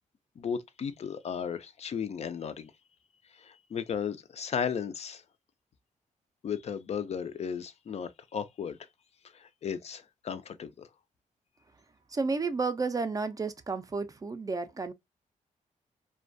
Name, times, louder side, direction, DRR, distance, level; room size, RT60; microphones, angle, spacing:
voice 1, 0.4-2.7 3.3-5.2 6.4-8.8 9.3-10.9, left 7 dB, 50° left, 0.4 m, -35 dB
voice 2, 12.1-14.9, right 4 dB, 25° right, 0.4 m, -31 dB
2.3 x 2.2 x 2.5 m
cardioid pair, 95°, 14 cm